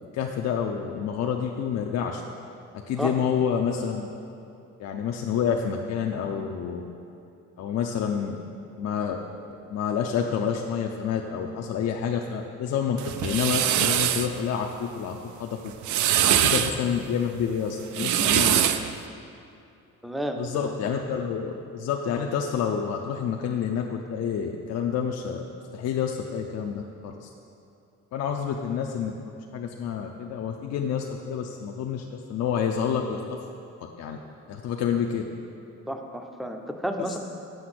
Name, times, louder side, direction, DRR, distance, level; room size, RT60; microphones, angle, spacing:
voice 1, 0.1-2.2 2.9-4.1 4.8-6.8 7.6-8.4 8.8-9.2 9.7-15.6 16.2-18.7 20.4-25.4 25.7-27.3 28.1-33.2 34.0-34.2 34.5-35.2 37.0-37.1, left 7 dB, 60° left, 2 dB, 0.5 m, -28 dB
sound 1, 13.0-14.3 15.7-16.7 17.8-18.9, right 11 dB, 75° right, 0.5 m, -23 dB
voice 2, 20.0-20.8 35.9-37.2, equal, ahead, 4 dB, 0.5 m, -32 dB
7.9 x 5.8 x 5.9 m, 2.6 s
cardioid pair, 135°, 30 cm